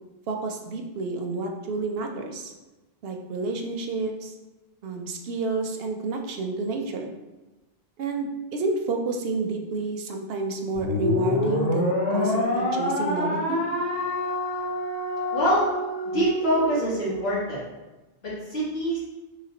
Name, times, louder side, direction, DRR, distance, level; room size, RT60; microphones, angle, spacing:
voice 1, 0.3-2.5 3.0-4.3 4.8-7.1 8.0-13.6, right 3 dB, 75° right, 3 dB, 0.8 m, -29 dB
sound 1, 10.8-17.2, left 1 dB, 40° left, 0.8 m, -27 dB
voice 2, 15.3-15.6 16.1-17.6 18.2-19.0, equal, 80° left, -9 dB, 1.8 m, -25 dB
3.2 x 3.0 x 3.9 m, 1.1 s
omnidirectional pair, 1.1 m